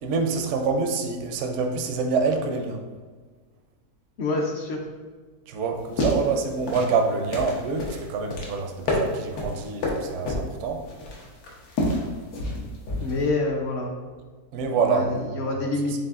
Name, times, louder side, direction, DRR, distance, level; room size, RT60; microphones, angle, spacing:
voice 1, 0.0-2.8 5.5-10.8 14.5-15.6, right 4 dB, 65° right, 4 dB, 0.8 m, -26 dB
voice 2, 4.2-4.9 13.0-13.9 14.8-15.9, left 2 dB, 60° left, 0 dB, 0.7 m, -27 dB
sound 1, 5.7-13.3, left 1 dB, 80° left, 1.4 m, -29 dB
7.4 x 2.5 x 2.4 m, 1.4 s
omnidirectional pair, 1.6 m